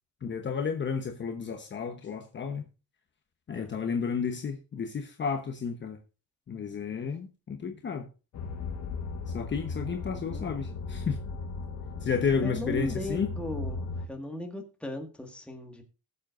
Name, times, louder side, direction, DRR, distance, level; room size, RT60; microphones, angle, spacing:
voice 1, 0.2-2.7 3.5-6.0 6.5-8.1 9.3-11.2 12.0-13.3, left 6 dB, 30° left, 1.0 m, -32 dB
sound 1, 8.3-14.1, left 4 dB, 50° left, 1.3 m, -37 dB
voice 2, 9.9-10.6 12.4-15.8, left 1 dB, 5° left, 1.8 m, -38 dB
19.5 x 7.6 x 2.6 m
cardioid pair, 145°, 36 cm